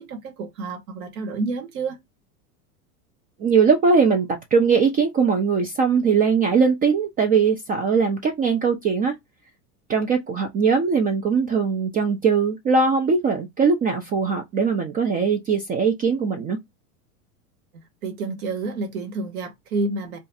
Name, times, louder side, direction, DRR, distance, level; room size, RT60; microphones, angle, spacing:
voice 1, 0.0-2.0 18.0-20.2, right 3 dB, 70° right, 1.3 m, -29 dB
voice 2, 3.4-9.1 9.9-16.6, right 5 dB, 20° right, 0.3 m, -20 dB
2.4 x 2.4 x 3.9 m
hypercardioid pair, 100°, 45 cm